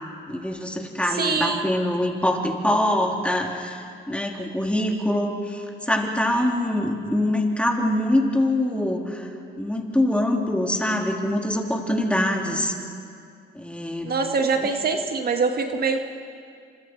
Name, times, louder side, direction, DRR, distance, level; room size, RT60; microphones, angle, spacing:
voice 1, 0.3-9.3 9.6-12.7 13.5-14.1, left 1 dB, 5° left, 1 dB, 3.2 m, -24 dB
voice 2, 1.1-1.6 14.0-16.0, right 4 dB, 50° right, 5 dB, 1.6 m, -24 dB
28.5 x 26.0 x 4.6 m, 2.3 s
cardioid pair, 90°, 20 cm